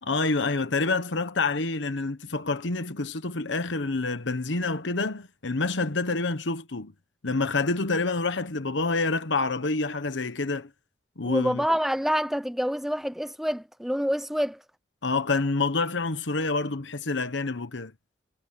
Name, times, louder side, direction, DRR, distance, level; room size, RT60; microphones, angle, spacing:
voice 1, 0.0-6.9 7.2-10.7 11.2-11.6 15.0-17.9, left 3 dB, 90° left, 1.2 m, -27 dB
voice 2, 11.2-14.6, equal, ahead, 0.6 m, -27 dB
head